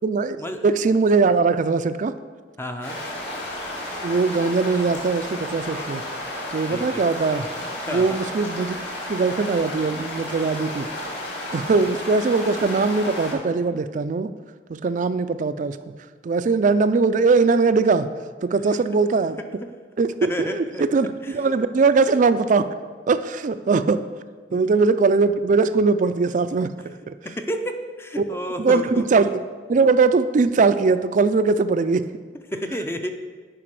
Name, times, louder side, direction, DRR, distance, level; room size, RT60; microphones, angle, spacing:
voice 1, 0.0-0.4 0.6-2.1 4.0-6.0 6.5-7.5 7.9-8.8 9.1-10.9 11.5-14.3 14.7-15.8 16.2-18.1 18.4-19.4 20.0-22.7 23.1-24.0 24.5-26.7 27.1-27.2 28.2-28.3 28.6-29.4 29.7-32.1, right 4 dB, 45° right, 12 dB, 0.4 m, -20 dB
voice 2, 2.6-3.0 6.7-7.0 7.9-8.2 19.6-19.7 20.2-20.8 21.2-21.3 24.5-24.6 27.2-29.1 32.5-33.1, equal, 15° left, 6 dB, 0.5 m, -30 dB
sound 1, 2.8-13.3, left 1 dB, 70° left, 2.1 m, -32 dB
9.9 x 5.1 x 4.7 m, 1.5 s
head